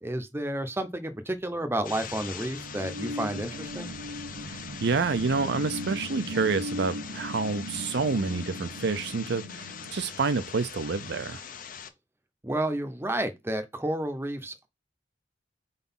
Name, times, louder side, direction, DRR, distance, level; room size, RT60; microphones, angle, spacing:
voice 1, 0.0-3.9 12.4-14.7, right 1 dB, 15° right, 0.8 m, -31 dB
sound 1, 1.5-10.8, equal, 90° right, 1.0 m, -39 dB
sound 2, 1.8-11.9, left 7 dB, 50° left, 0.7 m, -42 dB
voice 2, 4.5-11.4, right 4 dB, 65° right, 0.6 m, -28 dB
4.8 x 4.0 x 5.5 m
head